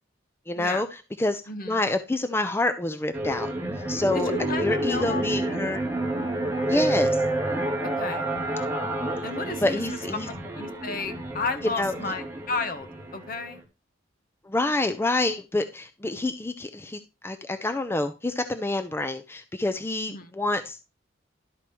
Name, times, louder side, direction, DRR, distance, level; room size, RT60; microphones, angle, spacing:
voice 1, 0.5-3.5 3.9-4.3 4.6-5.8 6.7-7.2 9.1-9.2 9.6-10.3 11.8-11.9 14.5-20.8, left 2 dB, 10° left, 0.4 m, -27 dB
voice 2, 1.5-1.8 4.1-5.2 5.5-5.6 7.8-8.3 9.2-10.0 10.3-13.6 20.1-20.3, left 4 dB, 50° left, 0.9 m, -33 dB
sound 1, 3.1-13.6, right 1 dB, 15° right, 1.4 m, -29 dB
12.0 x 4.7 x 2.9 m
head